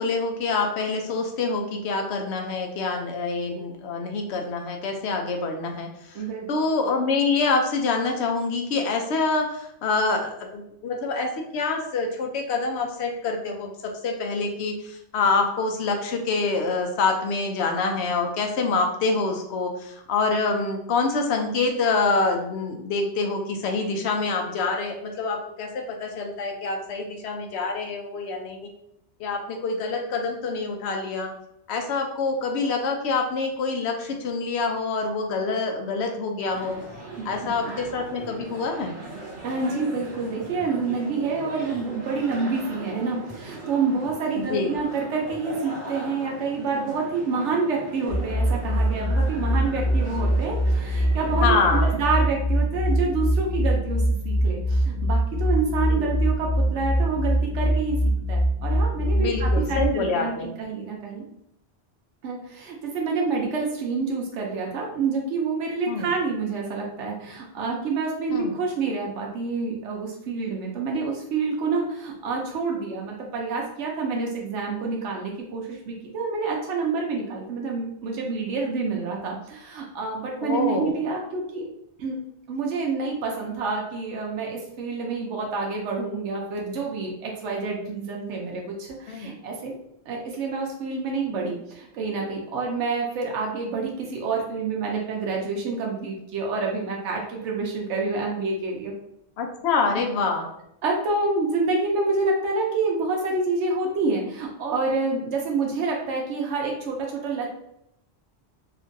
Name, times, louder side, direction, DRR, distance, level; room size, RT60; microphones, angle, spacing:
voice 1, 0.0-5.9 6.5-28.7 29.2-31.3 31.7-36.8 37.2-38.9 44.4-44.7 51.4-51.9 55.9-56.1 59.2-60.5 65.9-66.1 68.3-68.5 80.4-80.9 89.1-89.4 99.4-100.4, left 4 dB, 75° left, 3 dB, 0.8 m, -26 dB
voice 2, 6.1-6.5 37.2-37.3 39.4-58.0 58.3-61.2 62.2-81.7 82.0-82.2 82.5-89.7 90.1-98.9 100.8-107.5, right 4 dB, 90° right, -1 dB, 1.0 m, -28 dB
sound 1, 36.5-52.0, right 2 dB, 70° right, 1.1 m, -39 dB
sound 2, 48.1-59.9, equal, ahead, 0.8 m, -23 dB
2.9 x 2.5 x 2.5 m, 0.78 s
omnidirectional pair, 1.2 m